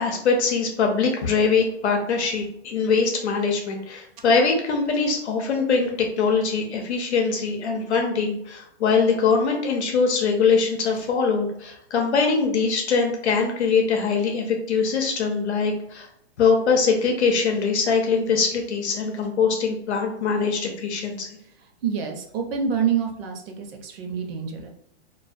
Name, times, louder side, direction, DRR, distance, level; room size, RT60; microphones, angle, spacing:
voice 1, 0.0-16.1 16.4-21.3, left 5 dB, 90° left, 2 dB, 0.7 m, -22 dB
voice 2, 21.8-24.7, right 7 dB, 60° right, 4 dB, 0.7 m, -27 dB
2.2 x 2.2 x 2.5 m, 0.73 s
hypercardioid pair, 145°, 33 cm